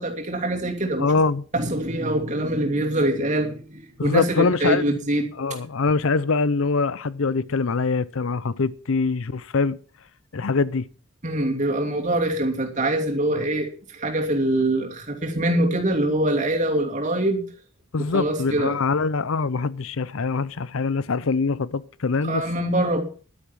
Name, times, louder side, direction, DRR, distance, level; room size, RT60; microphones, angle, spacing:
voice 1, 0.0-1.1 1.5-5.6 11.2-17.4 18.0-18.8 22.2-23.0, right 1 dB, 35° right, 2.8 m, -24 dB
voice 2, 1.0-1.5 4.0-4.9 5.4-9.8 10.3-10.9 13.3-13.4 17.9-22.5, left 4 dB, 65° left, 0.6 m, -23 dB
11.5 x 10.0 x 6.3 m
head